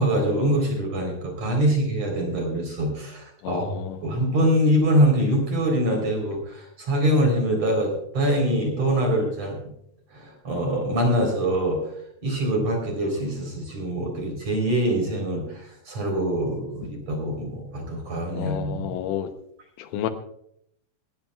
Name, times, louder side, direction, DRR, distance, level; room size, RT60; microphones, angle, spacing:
voice 1, 0.0-3.8 4.0-9.6 10.1-11.8 12.2-18.9, right 1 dB, 35° right, 1 dB, 4.5 m, -24 dB
voice 2, 3.4-4.0 18.3-19.3 19.9-20.1, left 11 dB, 80° left, 7 dB, 3.4 m, -30 dB
20.0 x 16.5 x 2.4 m, 0.72 s
omnidirectional pair, 5.8 m